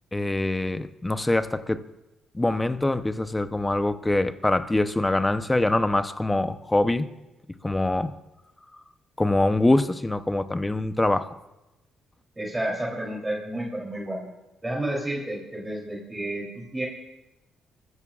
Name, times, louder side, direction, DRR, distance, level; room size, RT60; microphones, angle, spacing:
voice 1, 0.1-1.8 2.3-7.1 7.6-8.1 9.2-11.4, left 2 dB, 15° left, 11 dB, 0.8 m, -24 dB
voice 2, 12.4-14.3 14.6-16.9, right 1 dB, 15° right, -2 dB, 3.3 m, -31 dB
27.5 x 14.5 x 2.5 m, 1.0 s
cardioid pair, 90°, 0 cm